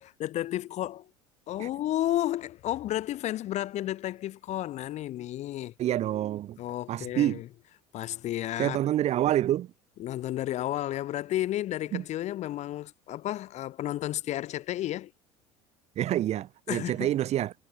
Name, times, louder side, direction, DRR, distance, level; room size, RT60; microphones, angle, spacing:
voice 1, 0.0-1.1 1.5-5.7 6.6-7.5 7.9-8.8 10.0-15.1 16.7-17.1, left 14 dB, 45° left, 0.8 m, -32 dB
voice 2, 5.8-6.6 6.9-7.4 8.6-9.7 11.9-12.0 16.0-17.5, right 12 dB, 45° right, 0.8 m, -27 dB
hypercardioid pair, 75°, 16 cm